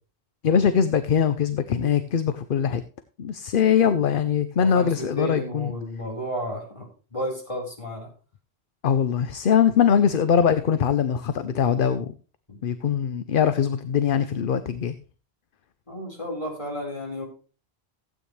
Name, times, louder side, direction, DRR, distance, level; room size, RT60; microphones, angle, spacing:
voice 1, 0.4-2.8 3.2-5.7 8.8-12.1 12.6-15.0, left 8 dB, 60° left, 12 dB, 0.8 m, -22 dB
voice 2, 4.6-8.1 12.5-12.6 15.9-17.2, equal, 30° left, -3 dB, 4.4 m, -32 dB
15.5 x 8.7 x 3.2 m, 0.36 s
omnidirectional pair, 1.1 m